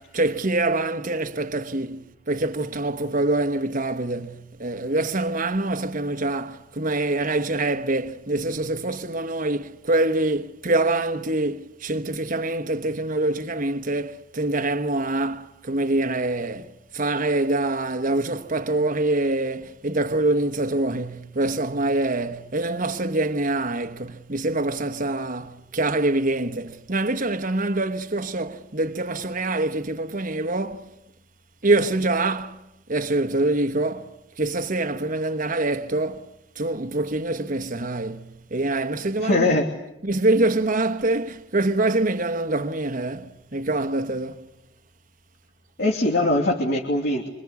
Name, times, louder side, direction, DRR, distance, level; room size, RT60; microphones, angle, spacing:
voice 1, 0.0-30.9 31.6-36.3 36.5-39.5 40.0-44.5, right 2 dB, 45° right, 1.3 m, -25 dB
voice 2, 39.2-39.7 45.8-47.3, left 2 dB, 60° left, 3.1 m, -21 dB
26.0 x 26.0 x 8.4 m
head